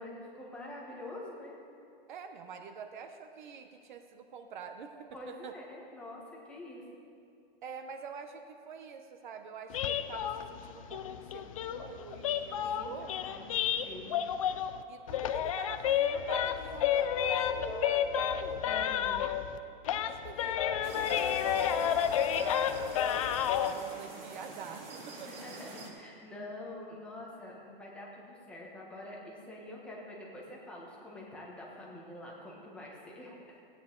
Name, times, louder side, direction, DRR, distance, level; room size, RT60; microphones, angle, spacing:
voice 1, 0.0-1.6 5.1-6.8 12.6-12.9 13.2-14.2 18.6-19.3 25.2-33.6, left 1 dB, 5° left, -4 dB, 1.1 m, -46 dB
voice 2, 2.1-5.6 7.6-13.1 14.9-18.8 19.9-23.0 23.6-25.5, right 6 dB, 55° right, 7 dB, 0.8 m, -46 dB
sound 1, 9.7-14.8 15.1-19.6 19.8-23.7, left 9 dB, 35° left, 0.4 m, -31 dB
sound 2, 20.8-25.9, right 3 dB, 70° right, 2.4 m, -46 dB
16.0 x 9.3 x 3.8 m, 2.5 s
hypercardioid pair, 170°, 29 cm